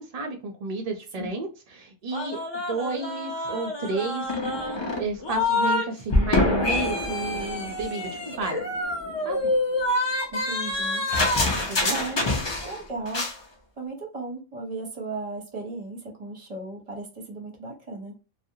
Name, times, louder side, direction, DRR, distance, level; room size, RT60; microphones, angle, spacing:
voice 1, 0.0-2.4 2.7-4.5 5.0-8.6 9.2-9.5 11.7-12.3, right 3 dB, 70° right, 0.3 m, -32 dB
sound 1, 2.1-5.9 6.1-12.8 13.1-13.4, left 2 dB, 45° left, 0.3 m, -26 dB
voice 2, 10.3-11.0 11.8-12.2 12.6-13.3 13.8-18.1, right 3 dB, 40° right, 0.6 m, -36 dB
2.4 x 2.0 x 2.7 m
omnidirectional pair, 1.2 m